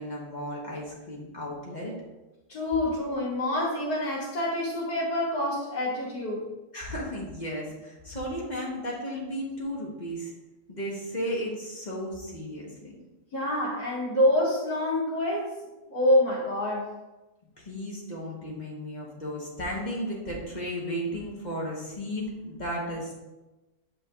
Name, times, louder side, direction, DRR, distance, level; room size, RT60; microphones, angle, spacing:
voice 1, 0.0-1.9 6.7-10.3 10.7-13.0 17.6-23.3, equal, 30° left, -3 dB, 1.2 m, -34 dB
voice 2, 2.5-6.4 13.3-15.6 15.9-16.9, left 1 dB, 60° left, -8 dB, 2.8 m, -26 dB
8.1 x 5.7 x 2.5 m, 1.1 s
omnidirectional pair, 1.8 m